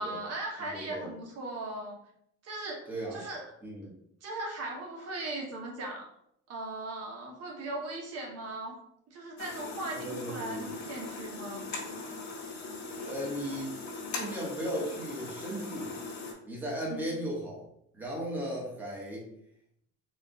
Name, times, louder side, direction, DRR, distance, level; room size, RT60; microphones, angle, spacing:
voice 1, 0.0-2.0 2.4-3.4 4.2-6.1 6.5-8.7 9.1-11.6 16.9-17.1, right 2 dB, 55° right, 0 dB, 0.9 m, -38 dB
voice 2, 0.6-1.1 2.9-3.2 3.6-3.9 10.0-10.7 12.9-13.8 14.1-15.9 16.5-17.6 17.9-19.3, equal, 5° right, -4 dB, 1.0 m, -36 dB
sound 1, 9.4-16.3, left 3 dB, 70° left, 1.2 m, -40 dB
4.3 x 2.4 x 3.7 m, 0.73 s
cardioid pair, 150°, 29 cm